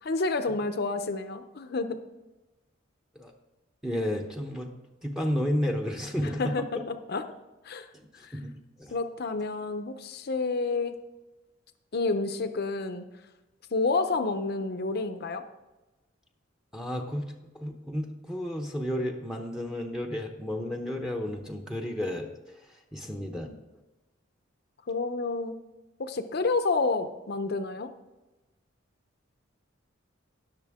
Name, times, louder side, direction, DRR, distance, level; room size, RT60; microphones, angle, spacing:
voice 1, 0.0-2.0 6.2-7.2 7.6-7.9 8.2-8.4 8.9-11.0 11.9-13.1 13.7-15.4 23.2-23.6 24.9-25.6 26.0-27.9, left 3 dB, 55° left, 9 dB, 0.7 m, -29 dB
voice 2, 3.8-4.7 5.0-6.7 8.3-8.5 8.8-8.9 16.7-17.2 17.6-22.3 22.9-23.5, equal, 5° right, 3 dB, 0.8 m, -32 dB
18.0 x 6.6 x 3.6 m, 1.1 s
head